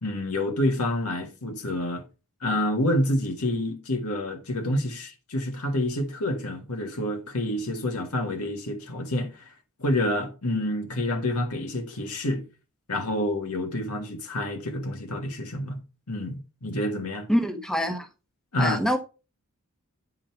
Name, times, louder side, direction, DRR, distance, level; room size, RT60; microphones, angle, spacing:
voice 1, 0.0-2.0 2.4-9.5 9.8-12.4 12.9-15.8 16.1-17.3 18.5-18.8, left 1 dB, 85° left, 1.5 m, -28 dB
voice 2, 17.3-18.1 18.6-19.0, equal, ahead, 0.8 m, -25 dB
9.2 x 3.8 x 4.5 m
head